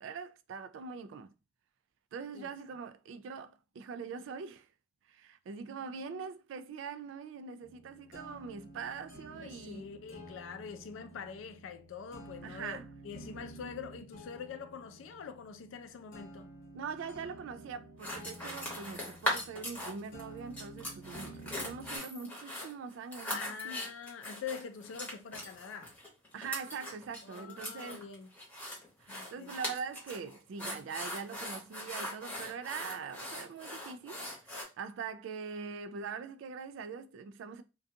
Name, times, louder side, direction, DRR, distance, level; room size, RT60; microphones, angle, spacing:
voice 1, 0.0-1.3 2.1-4.7 5.1-9.8 12.4-12.9 16.7-23.9 26.3-28.0 29.0-37.6, right 5 dB, 70° right, 0.3 m, -43 dB
sound 1, 7.6-22.0, right 1 dB, 45° left, 0.9 m, -51 dB
voice 2, 9.3-16.5 23.3-25.9 27.2-28.3 29.1-29.5, left 6 dB, 80° left, 0.4 m, -44 dB
sound 2, 18.0-20.2 20.5-34.6, equal, 10° left, 0.9 m, -40 dB
2.5 x 2.3 x 2.6 m
head